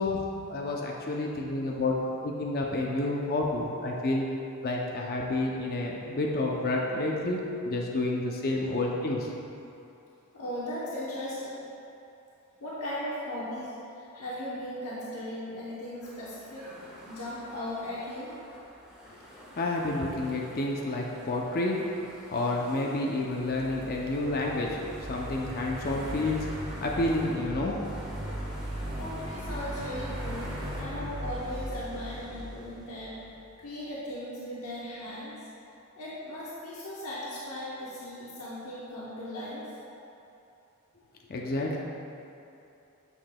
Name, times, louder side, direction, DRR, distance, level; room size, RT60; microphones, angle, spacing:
voice 1, 0.0-2.0 2.2-4.3 4.6-9.3 19.6-21.8 22.3-24.8 25.1-26.5 26.8-27.8 41.3-41.8, left 2 dB, 45° left, -2 dB, 0.6 m, -29 dB
voice 2, 10.3-11.7 12.6-16.7 17.1-18.3 29.0-33.2 33.6-35.3 36.0-39.7, left 1 dB, 80° left, -7 dB, 0.9 m, -37 dB
sound 1, 16.0-30.8, equal, 5° right, 1.3 m, -48 dB
sound 2, 23.3-33.5, right 1 dB, 20° right, 0.6 m, -38 dB
9.1 x 6.0 x 2.2 m, 2.8 s
head